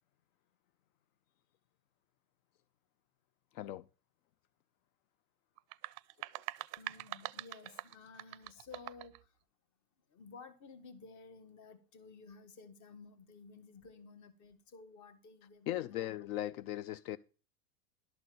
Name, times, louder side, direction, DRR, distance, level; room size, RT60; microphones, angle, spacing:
voice 1, 3.5-3.9 15.7-17.2, left 14 dB, 65° left, 0.6 m, -38 dB
sound 1, 5.6-9.2, right 21 dB, 40° right, 0.4 m, -44 dB
voice 2, 6.8-9.3 10.1-15.9, left 4 dB, 40° left, 1.7 m, -54 dB
11.5 x 4.1 x 7.7 m
hypercardioid pair, 120°, 45 cm